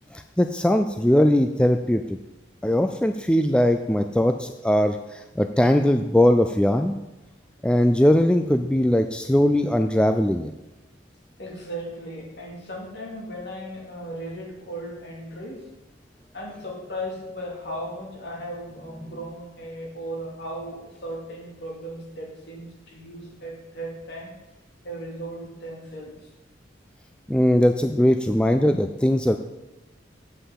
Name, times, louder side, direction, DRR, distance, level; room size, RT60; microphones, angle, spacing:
voice 1, 0.1-2.0 2.6-7.0 7.6-10.5 27.3-29.4, left 1 dB, 5° left, 7 dB, 0.3 m, -20 dB
voice 2, 11.4-15.7 16.3-24.4 24.8-26.3, equal, 60° left, -1 dB, 2.5 m, -36 dB
8.4 x 5.6 x 7.5 m, 1.1 s
head